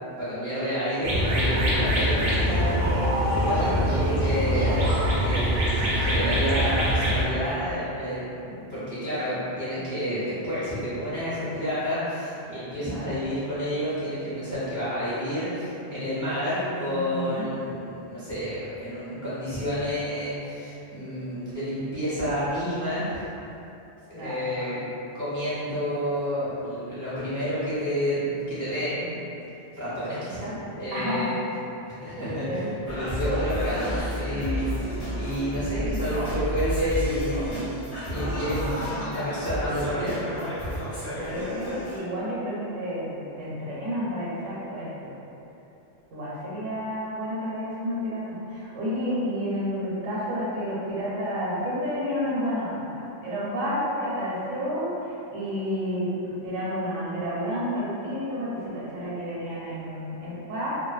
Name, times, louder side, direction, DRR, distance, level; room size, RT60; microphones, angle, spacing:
voice 1, 0.2-5.6 5.9-23.2 24.1-24.9 25.1-29.2 29.8-31.4 31.9-40.2, equal, 20° right, -13 dB, 0.6 m, -30 dB
sound 1, 1.0-7.2, equal, 60° right, 0.6 m, -23 dB
voice 2, 16.9-17.5 24.1-24.8 30.9-31.3 32.2-32.6 41.2-45.3 46.1-60.7, equal, 80° right, -8 dB, 1.0 m, -30 dB
Singing, 32.9-42.0, equal, 35° left, 0.8 m, -31 dB
2.4 x 2.1 x 2.4 m, 2.9 s
omnidirectional pair, 1.3 m